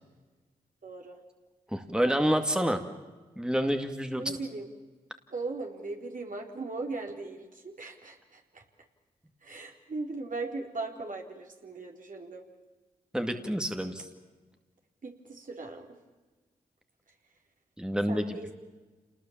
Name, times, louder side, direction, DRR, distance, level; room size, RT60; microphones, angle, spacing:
voice 1, 0.8-1.2 2.0-2.3 4.1-4.7 5.3-8.6 9.4-12.5 15.0-15.9 18.1-18.5, right 3 dB, 55° right, 2 dB, 4.0 m, -38 dB
voice 2, 1.7-2.8 3.4-4.2 13.1-14.1 17.8-18.5, equal, 5° right, 6 dB, 2.2 m, -28 dB
28.0 x 20.0 x 7.4 m, 1.3 s
cardioid pair, 50°, 16 cm